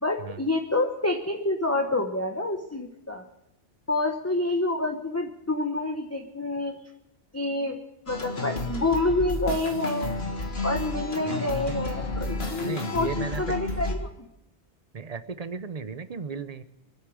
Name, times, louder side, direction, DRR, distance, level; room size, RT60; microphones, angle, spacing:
voice 1, 0.0-3.2 3.9-6.8 7.3-7.8 8.1-10.1 10.6-14.1, left 2 dB, 15° left, 2 dB, 1.0 m, -28 dB
sound 1, 8.1-13.9, left 2 dB, 75° left, 2.0 m, -31 dB
voice 2, 11.3-11.8 12.6-13.5 14.9-16.6, right 5 dB, 40° right, 12 dB, 0.8 m, -35 dB
24.0 x 8.3 x 6.3 m, 0.86 s
omnidirectional pair, 1.1 m